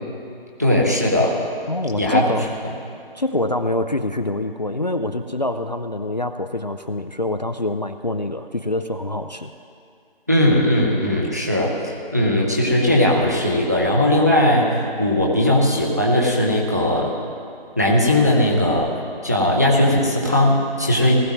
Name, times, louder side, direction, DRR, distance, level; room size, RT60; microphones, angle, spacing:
voice 1, 0.6-1.4 2.0-2.2 10.3-17.1 17.8-21.1, left 1 dB, 15° right, -2 dB, 0.9 m, -18 dB
voice 2, 1.7-2.5 3.1-9.5, left 1 dB, 45° left, 8 dB, 0.4 m, -25 dB
19.0 x 14.5 x 3.1 m, 2.4 s
figure-of-eight pair, 180°, 30 cm